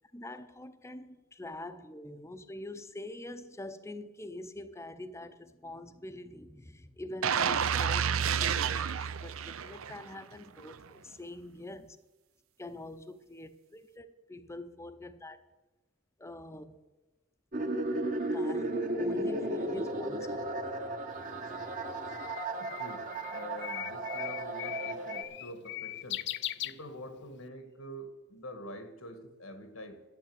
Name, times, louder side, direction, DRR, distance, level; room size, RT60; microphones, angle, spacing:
voice 1, 0.1-12.0 12.6-15.4 16.2-16.8 18.3-18.7 19.0-20.6, left 1 dB, 15° left, 0.7 m, -44 dB
sound 1, 7.2-10.2 10.6-10.7, right 7 dB, 85° right, 0.6 m, -30 dB
sound 2, 17.5-25.2, right 1 dB, 40° right, 1.2 m, -34 dB
Bird, 21.1-27.4, left 14 dB, 55° left, 0.4 m, -40 dB
voice 2, 22.6-26.2 26.6-30.0, equal, 90° left, 1.7 m, -46 dB
11.5 x 8.9 x 7.8 m
head